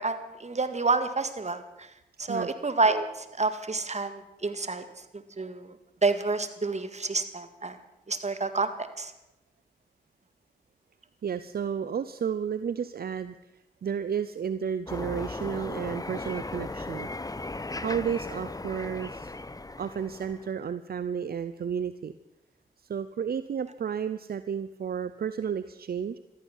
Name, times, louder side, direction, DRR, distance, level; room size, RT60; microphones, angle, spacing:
voice 1, 0.0-1.9 2.2-5.8 6.0-7.8 8.1-9.1, right 3 dB, 45° right, 10 dB, 2.0 m, -29 dB
voice 2, 11.2-13.3 13.8-17.1 17.8-19.3 19.8-22.1 22.9-26.2, right 7 dB, 70° right, 13 dB, 0.7 m, -32 dB
sound 1, 14.9-20.5, left 2 dB, 20° left, 0.9 m, -37 dB
14.0 x 13.5 x 7.4 m, 0.90 s
cardioid pair, 40°, 16 cm